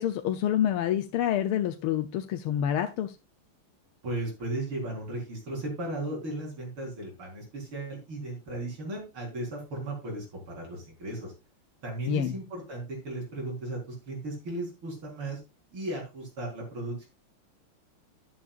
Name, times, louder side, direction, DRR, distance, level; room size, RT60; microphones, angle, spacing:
voice 1, 0.0-3.2 12.0-12.4, left 10 dB, 80° left, 6 dB, 1.7 m, -27 dB
voice 2, 4.0-11.3 11.8-15.4 15.7-17.1, right 2 dB, 75° right, -2 dB, 5.3 m, -36 dB
11.0 x 11.0 x 2.5 m, 0.26 s
omnidirectional pair, 2.4 m